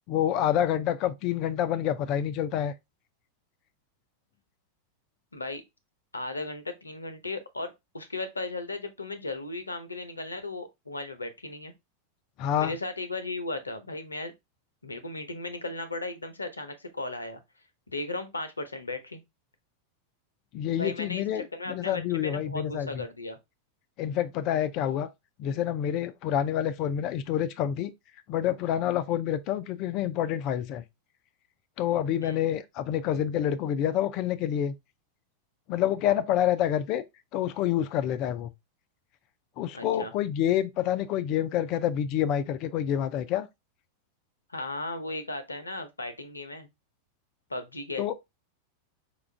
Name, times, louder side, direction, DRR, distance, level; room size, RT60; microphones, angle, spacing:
voice 1, 0.1-2.7 12.4-12.7 20.5-23.0 24.0-25.1 25.4-27.9 28.3-30.8 31.8-34.7 35.7-37.0 37.3-38.5 39.6-43.5 48.0-48.1, left 10 dB, 40° left, 0.4 m, -27 dB
voice 2, 5.3-5.6 6.1-11.7 12.6-14.3 14.8-17.4 17.9-19.2 20.8-23.4 32.2-32.4 39.7-40.1 44.5-46.7 47.5-48.0, left 2 dB, 80° left, 0.7 m, -36 dB
5.1 x 2.4 x 3.2 m
figure-of-eight pair, 90°, 0 cm